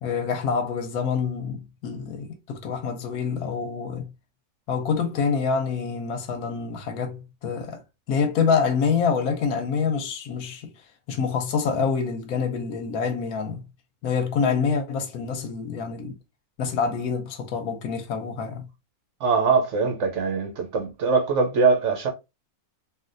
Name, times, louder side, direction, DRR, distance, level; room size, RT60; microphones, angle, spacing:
voice 1, 0.0-4.1 4.7-7.8 8.1-10.7 11.1-13.6 14.0-16.2 16.6-18.7, left 5 dB, 85° left, 1.2 m, -26 dB
voice 2, 19.2-22.1, right 4 dB, 65° right, 0.9 m, -22 dB
3.3 x 2.5 x 2.5 m
omnidirectional pair, 1.5 m